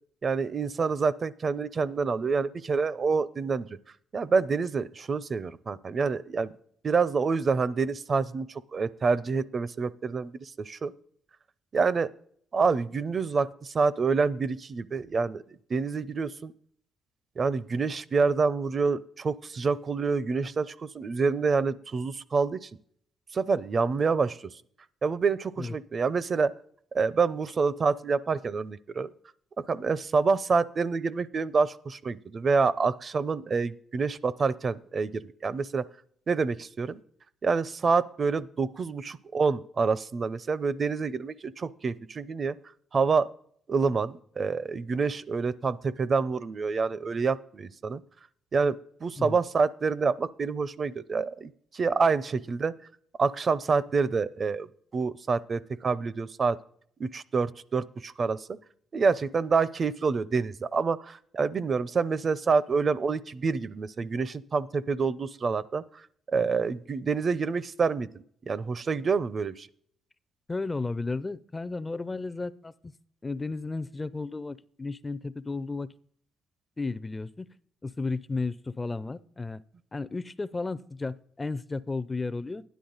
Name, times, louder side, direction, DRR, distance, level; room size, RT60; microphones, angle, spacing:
voice 1, 0.2-3.7 4.1-6.5 6.8-10.9 11.7-12.1 12.5-15.4 15.7-16.5 17.4-22.7 23.3-24.5 25.0-26.5 26.9-29.1 29.6-35.8 36.3-37.0 37.4-42.6 42.9-43.3 43.7-48.0 48.5-52.7 53.2-54.7 54.9-56.6 57.0-58.5 58.9-65.8 66.3-68.1 68.5-69.7, right 4 dB, 40° right, 18 dB, 0.5 m, -27 dB
voice 2, 70.5-72.7 73.2-75.9 76.8-77.5 77.8-79.6 79.9-82.6, left 3 dB, 20° left, 15 dB, 0.4 m, -33 dB
12.5 x 10.5 x 4.0 m, 0.62 s
cardioid pair, 90°, 0 cm